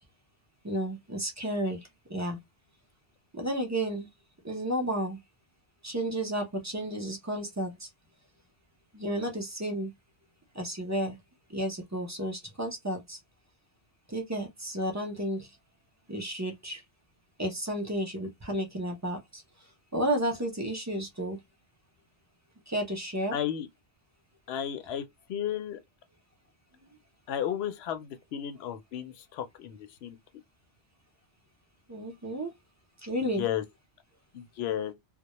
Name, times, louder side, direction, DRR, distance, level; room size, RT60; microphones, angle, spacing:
voice 1, 0.6-2.4 3.3-4.1 4.4-5.2 5.8-7.9 8.9-9.9 10.5-11.2 11.5-13.2 14.1-15.5 16.1-16.8 17.4-19.4 19.9-21.4 22.7-23.4 31.9-32.5 33.0-33.4, right 1 dB, 20° right, 0.5 m, -32 dB
voice 2, 23.3-23.7 24.5-25.8 27.3-30.2 33.2-33.6 34.3-34.9, left 10 dB, 75° left, 0.8 m, -33 dB
2.2 x 2.1 x 2.9 m
omnidirectional pair, 1.1 m